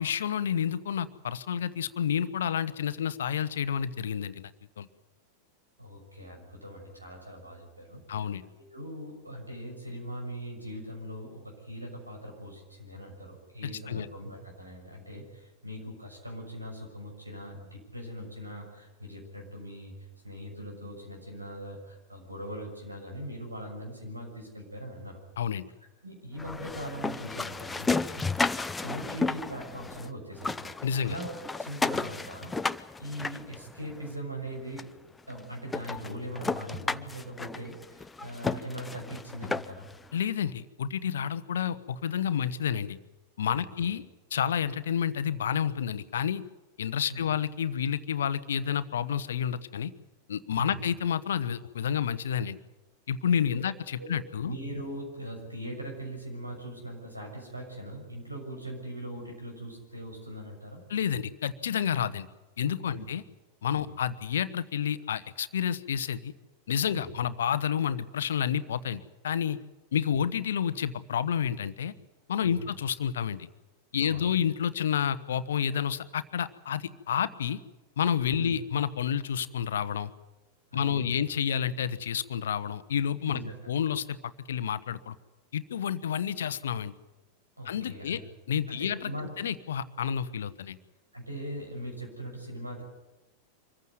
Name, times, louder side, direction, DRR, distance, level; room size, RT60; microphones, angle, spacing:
voice 1, 0.0-4.5 4.8-4.9 8.1-8.4 13.6-14.1 25.4-25.6 30.8-31.2 40.1-43.0 43.4-44.0 44.3-46.4 46.8-49.9 50.3-52.6 53.1-54.6 60.9-62.3 62.6-63.2 63.6-66.3 66.7-69.6 69.9-71.9 72.3-73.5 73.9-77.6 78.0-80.1 80.7-83.4 83.7-85.1 85.5-86.9 87.6-88.2 88.5-89.1 89.4-90.8, left 8 dB, 65° left, 14 dB, 0.9 m, -30 dB
voice 2, 5.8-8.3 8.7-20.0 20.2-25.2 26.0-28.3 28.8-31.3 31.6-34.9 35.3-39.9 43.6-43.9 47.1-47.2 50.5-50.8 54.0-54.1 54.4-60.8 62.8-63.0 66.9-67.1 72.4-72.7 74.0-74.3 78.3-78.5 80.7-81.2 83.2-83.5 87.6-88.2 88.7-89.3 91.1-92.8, equal, 85° right, 1 dB, 6.5 m, -41 dB
sound 1, 26.4-30.1 30.3-34.1 34.8-34.9 35.3-35.4 35.7-39.9, left 3 dB, 10° left, 0.7 m, -33 dB
25.0 x 15.0 x 9.4 m, 1.1 s
figure-of-eight pair, 90°, 0 cm